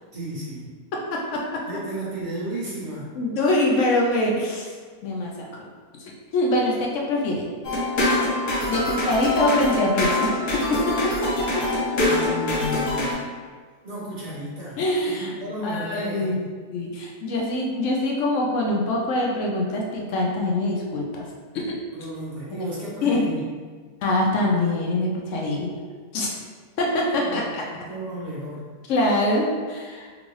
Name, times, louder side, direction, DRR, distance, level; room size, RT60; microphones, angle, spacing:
voice 1, 0.1-0.7 1.7-3.1 12.0-13.1 13.8-14.8 15.1-16.4 21.9-23.5 27.2-28.6, right 1 dB, 35° right, -8 dB, 1.0 m, -33 dB
voice 2, 1.1-1.6 3.2-4.7 5.0-5.7 6.0-7.5 8.7-11.5 14.8-15.3 15.6-16.4 16.7-21.3 21.5-21.7 22.5-22.6 23.0-23.2 24.0-25.7 26.1-26.3 26.8-27.6 28.9-30.1, left 1 dB, 70° left, -2 dB, 0.7 m, -24 dB
sound 1, 7.6-13.1, left 2 dB, 85° left, 1.6 m, -24 dB
3.7 x 2.4 x 3.1 m, 1.5 s
omnidirectional pair, 1.7 m